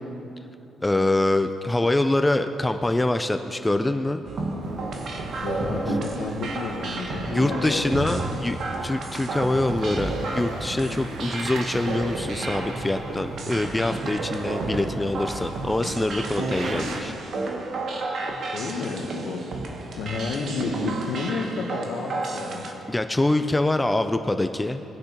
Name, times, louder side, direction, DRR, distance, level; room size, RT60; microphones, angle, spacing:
voice 1, 0.8-4.2 7.3-17.1 22.9-24.8, left 2 dB, 15° left, 8 dB, 0.4 m, -24 dB
sound 1, 4.2-22.7, right 2 dB, 60° right, 1.1 m, -31 dB
sound 2, 4.6-17.0, right 3 dB, 80° right, 0.8 m, -39 dB
voice 2, 5.4-8.2 10.8-11.0 18.4-19.5 19.9-22.7, left 4 dB, 75° left, -2 dB, 1.0 m, -31 dB
19.0 x 6.4 x 2.9 m, 2.8 s
cardioid pair, 90°, 0 cm